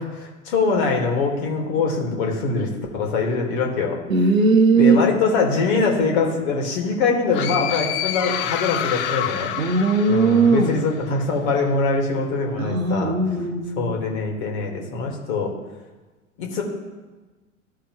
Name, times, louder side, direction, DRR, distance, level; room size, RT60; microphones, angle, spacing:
voice 1, 0.0-4.0 4.8-9.5 10.1-13.1 13.8-15.5 16.4-16.6, left 4 dB, 55° left, 1 dB, 2.0 m, -23 dB
voice 2, 4.1-5.0 9.6-10.8 12.6-13.9, right 4 dB, 80° right, 6 dB, 1.0 m, -18 dB
sound 1, 7.3-11.0, left 10 dB, 30° left, 0.5 m, -28 dB
14.0 x 4.7 x 3.1 m, 1.2 s
figure-of-eight pair, 95°, 40 cm